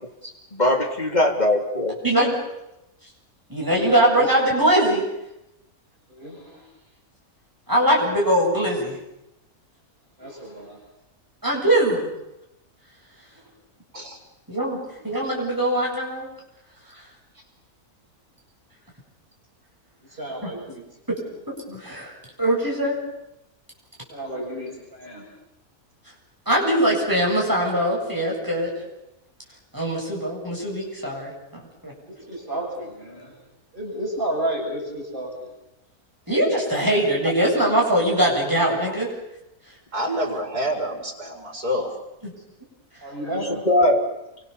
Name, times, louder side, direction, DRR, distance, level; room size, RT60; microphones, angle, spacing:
voice 1, 0.5-2.0 43.3-44.1, left 1 dB, 25° left, 2 dB, 3.3 m, -21 dB
voice 2, 3.5-5.0 7.7-9.0 11.4-12.0 14.5-14.8 15.0-16.3 20.4-20.5 21.5-22.1 22.4-23.0 26.5-28.7 29.7-31.9 36.3-39.1 42.2-42.3, right 1 dB, 10° right, -2 dB, 8.0 m, -21 dB
voice 3, 6.1-6.6 10.2-10.8 20.1-20.8 24.1-25.3 32.1-33.3 33.7-35.5 43.0-43.7, right 1 dB, 35° right, -2 dB, 7.1 m, -31 dB
voice 4, 39.9-41.9, equal, 85° right, 1 dB, 5.8 m, -27 dB
29.0 x 24.5 x 7.2 m, 0.89 s
omnidirectional pair, 1.6 m